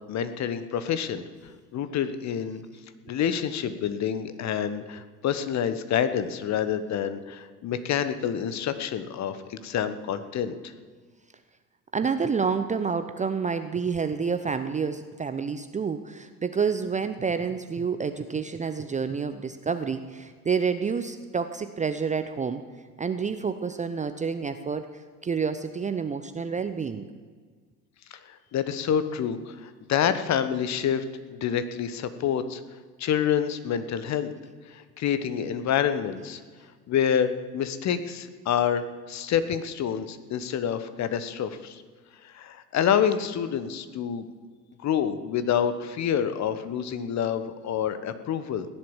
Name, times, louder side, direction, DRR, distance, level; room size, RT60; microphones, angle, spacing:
voice 1, 0.1-1.2 1.7-2.6 3.1-10.7 28.3-31.0 31.3-32.6 33.0-34.3 34.7-36.4 36.9-41.8 42.2-44.3 44.8-48.7, left 8 dB, 35° left, 11 dB, 1.2 m, -27 dB
voice 2, 11.9-22.6 23.0-24.9 25.2-27.1, right 5 dB, 15° right, 9 dB, 0.7 m, -28 dB
16.5 x 11.0 x 7.2 m, 1.5 s
figure-of-eight pair, 70°, 48 cm